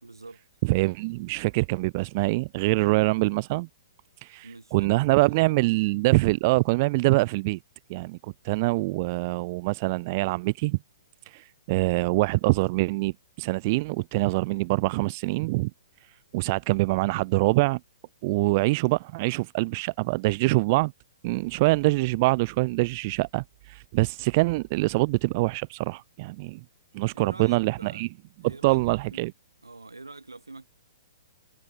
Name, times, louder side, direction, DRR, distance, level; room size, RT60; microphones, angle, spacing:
voice 1, 0.0-0.5 4.4-5.9 27.1-28.0 28.4-29.3 29.6-30.7, right 3 dB, 80° right, 2.3 m, -46 dB
voice 2, 0.6-3.7 4.2-7.6 7.9-10.8 11.3-15.7 16.3-17.8 18.2-20.9 21.2-26.6 26.9-28.1 28.6-29.3, right 23 dB, 35° right, 0.4 m, -24 dB
figure-of-eight pair, 115°, 2 cm